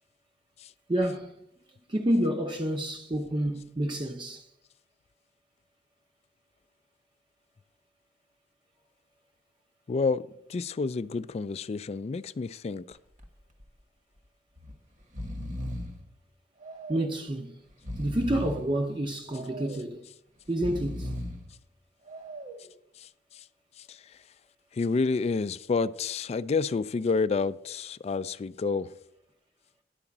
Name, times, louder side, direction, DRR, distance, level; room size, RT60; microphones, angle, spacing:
voice 1, 0.9-1.4 1.9-4.5 16.9-17.6 18.0-20.1 20.5-21.1, right 1 dB, 30° right, 0.6 m, -29 dB
voice 2, 9.9-13.0 23.0-23.4 23.8-24.2 24.7-28.9, left 4 dB, 35° left, 0.3 m, -29 dB
Breathing, 12.9-13.3 13.6-13.7 14.6-14.8 15.0-16.0 16.6-17.2 17.7-18.7 19.3-19.9 20.5-21.5 22.1-22.7, equal, 45° right, 1.2 m, -37 dB
11.0 x 4.9 x 7.2 m
head